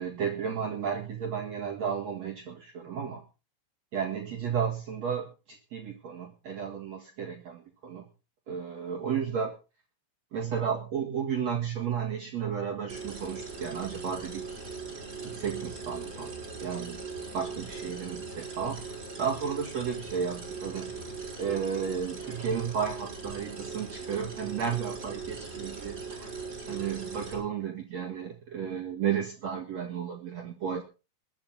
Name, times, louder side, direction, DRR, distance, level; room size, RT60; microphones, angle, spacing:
voice 1, 0.0-3.2 3.9-8.1 8.5-9.5 10.3-14.6 15.2-16.3 16.6-17.0 17.3-21.0 21.4-26.3 26.7-30.8, right 7 dB, 55° right, 1 dB, 1.8 m, -33 dB
sound 1, 12.9-27.4, right 4 dB, 20° right, 4.7 m, -40 dB
21.5 x 8.9 x 4.4 m, 0.33 s
omnidirectional pair, 6.0 m